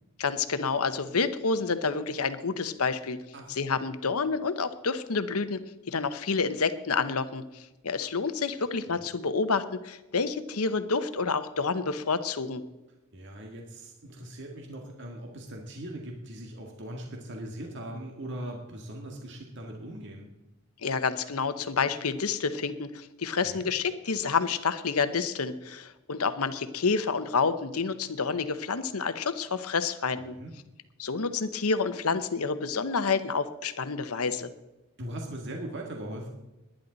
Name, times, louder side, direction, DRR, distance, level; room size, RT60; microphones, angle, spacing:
voice 1, 0.2-3.2 3.5-5.6 5.9-7.4 7.8-12.6 20.8-30.4 31.0-34.5, left 4 dB, 80° left, 11 dB, 0.9 m, -29 dB
voice 2, 13.1-20.3 23.4-23.7 30.3-30.6 35.0-36.3, right 1 dB, 55° right, 1 dB, 1.9 m, -40 dB
19.5 x 10.5 x 4.0 m, 1.0 s
head